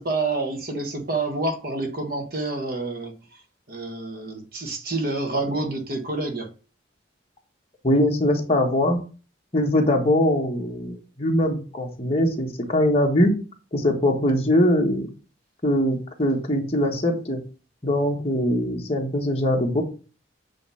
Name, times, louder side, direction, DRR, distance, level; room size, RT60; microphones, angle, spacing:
voice 1, 0.0-3.4 3.7-6.5, right 2 dB, 50° right, 1.3 m, -28 dB
voice 2, 7.8-9.0 9.5-13.3 13.7-15.1 15.6-17.4 17.8-19.8, left 1 dB, 30° left, 1.4 m, -22 dB
7.9 x 3.2 x 5.6 m
head